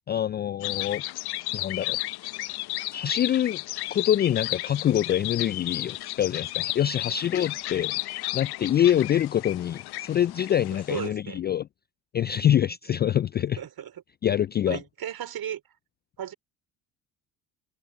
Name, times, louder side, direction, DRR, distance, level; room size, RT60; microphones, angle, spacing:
voice 1, 0.1-1.0 1.5-2.0 2.9-3.6 3.9-11.7 12.1-13.6 14.2-14.8, left 10 dB, 25° left, 0.3 m, -25 dB
sound 1, 0.6-11.1, left 18 dB, 50° left, 1.0 m, -33 dB
voice 2, 10.9-11.4 13.6-13.9 14.6-15.6 16.2-16.3, right 10 dB, 45° right, 4.8 m, -35 dB
figure-of-eight pair, 55°, 48 cm